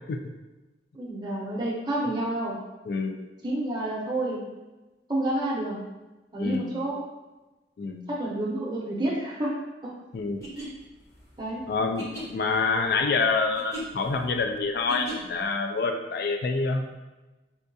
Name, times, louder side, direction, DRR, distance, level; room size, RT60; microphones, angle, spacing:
voice 1, 0.9-2.6 3.4-4.4 5.1-5.8 6.3-7.0 8.1-9.5 9.8-9.9 10.6-10.7 11.4-11.6, right 1 dB, 25° right, -5 dB, 0.6 m, -29 dB
voice 2, 2.9-3.3 6.4-6.7 7.8-8.1 10.1-10.4 11.7-17.0, left 4 dB, 60° left, 5 dB, 0.3 m, -27 dB
sound 1, 10.3-15.5, right 1 dB, 20° left, 0.7 m, -41 dB
4.4 x 2.3 x 2.6 m, 1.1 s
head